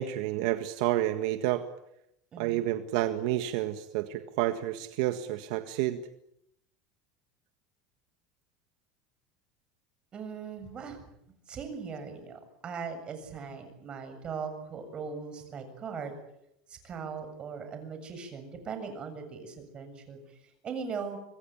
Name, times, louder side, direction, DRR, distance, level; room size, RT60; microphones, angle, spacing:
voice 1, 0.0-1.7 2.4-6.0, right 14 dB, 70° right, 9 dB, 1.7 m, -29 dB
voice 2, 10.1-11.0 11.5-16.1 16.7-21.2, right 5 dB, 30° right, 7 dB, 7.2 m, -39 dB
26.0 x 21.5 x 8.8 m, 0.79 s
supercardioid pair, 145°, 3 cm